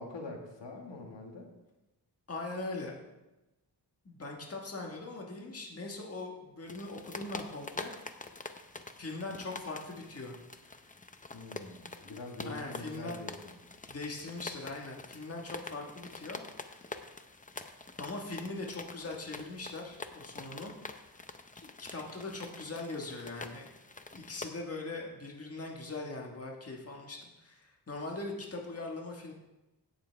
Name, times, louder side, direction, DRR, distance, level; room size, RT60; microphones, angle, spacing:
voice 1, 0.0-1.5 11.3-13.5, left 2 dB, 85° left, 1 dB, 1.8 m, -44 dB
voice 2, 2.3-2.9 4.0-7.9 9.0-10.3 10.6-10.8 12.0-12.2 12.4-13.2 13.9-16.4 16.7-16.9 18.0-20.7 21.6-23.7 24.1-29.3, left 2 dB, 35° left, 0 dB, 1.5 m, -41 dB
sound 1, 6.7-24.5, left 3 dB, 20° left, 0.6 m, -46 dB
17.0 x 7.0 x 3.4 m, 1.0 s
wide cardioid pair, 120°, 42 cm